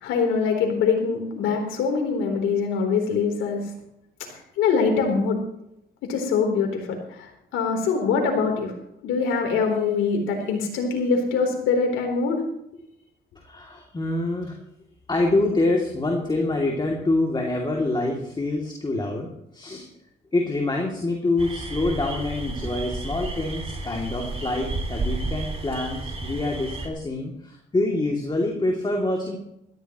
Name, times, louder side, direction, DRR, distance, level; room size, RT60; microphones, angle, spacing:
voice 1, 0.0-3.6 4.6-5.4 6.0-8.7 9.0-12.4, left 5 dB, 90° left, 2 dB, 3.8 m, -23 dB
voice 2, 13.4-14.6 15.1-19.9 20.3-29.4, left 2 dB, 20° left, 0 dB, 2.8 m, -26 dB
sound 1, 21.4-26.9, right 2 dB, 30° right, 2.5 m, -32 dB
17.5 x 14.5 x 3.1 m, 0.80 s
cardioid pair, 90°, 20 cm